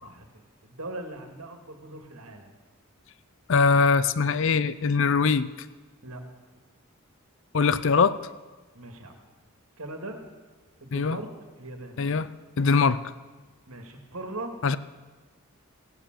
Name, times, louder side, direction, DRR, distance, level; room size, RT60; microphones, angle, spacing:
voice 1, 0.0-2.5 6.0-6.2 8.7-9.2 9.8-10.2 10.8-11.3 11.6-12.0 13.7-14.5, right 2 dB, 75° right, 4 dB, 2.0 m, -40 dB
voice 2, 3.5-5.5 7.5-8.2 10.9-11.2 12.0-12.3 12.6-13.0 14.6-14.8, left 5 dB, 55° left, 16 dB, 0.5 m, -22 dB
16.0 x 9.0 x 7.5 m, 1.3 s
head